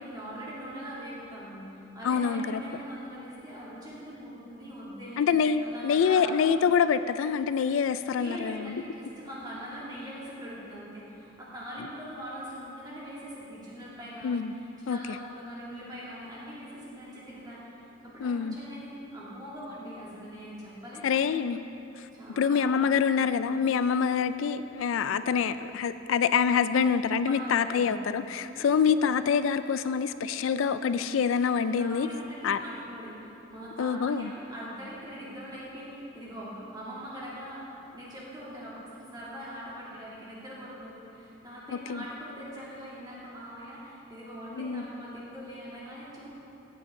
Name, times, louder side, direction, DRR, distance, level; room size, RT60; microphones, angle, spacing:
voice 1, 0.0-5.2 5.6-6.3 8.2-17.7 18.0-21.4 22.1-22.7 23.0-23.1 27.2-27.9 28.5-28.7 31.7-46.3, equal, 20° right, -7 dB, 2.4 m, -42 dB
voice 2, 2.0-2.6 5.2-8.8 14.2-14.5 14.9-15.0 18.2-18.6 21.0-21.6 22.4-32.1 32.4-32.6 33.8-34.3 41.9-42.0 44.6-44.8, left 6 dB, 75° left, 12 dB, 0.3 m, -26 dB
15.0 x 8.5 x 3.7 m, 2.8 s
head